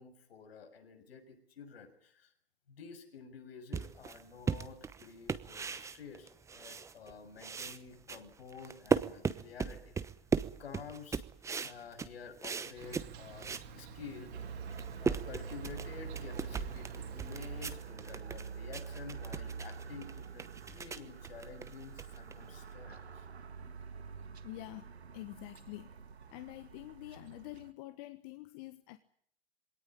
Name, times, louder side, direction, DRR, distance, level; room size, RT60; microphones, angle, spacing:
voice 1, 0.0-2.3 2.7-9.9 10.6-14.3 15.0-23.3, left 5 dB, 70° left, 6.9 m, -50 dB
sound 1, 3.7-7.1 7.4-13.7 14.1-14.2 14.6-22.7, right 5 dB, 10° right, 1.0 m, -37 dB
Insect, 12.8-17.7, right 6 dB, 30° right, 3.7 m, -50 dB
sound 2, 14.3-27.7, right 6 dB, 85° right, 1.7 m, -46 dB
voice 2, 24.4-26.0 26.3-29.0, left 17 dB, 40° left, 1.4 m, -47 dB
21.5 x 18.0 x 10.0 m
hypercardioid pair, 120°, 32 cm